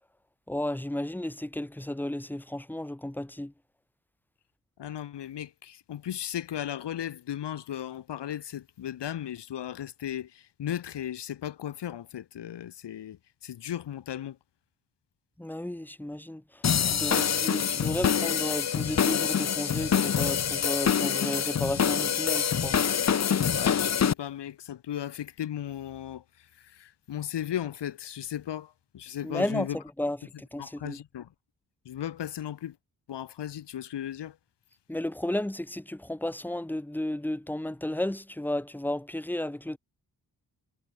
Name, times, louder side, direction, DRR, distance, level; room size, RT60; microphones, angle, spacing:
voice 1, 0.5-3.5 15.4-16.4 16.9-22.8 29.2-31.0 34.9-39.8, left 1 dB, 5° left, 1.8 m, -33 dB
voice 2, 4.8-14.4 23.5-29.8 30.6-31.3 31.8-32.8 33.1-34.4, left 10 dB, 85° left, 1.3 m, -36 dB
sound 1, 16.6-24.1, left 8 dB, 40° left, 0.8 m, -25 dB
wide cardioid pair, 155°, 40 cm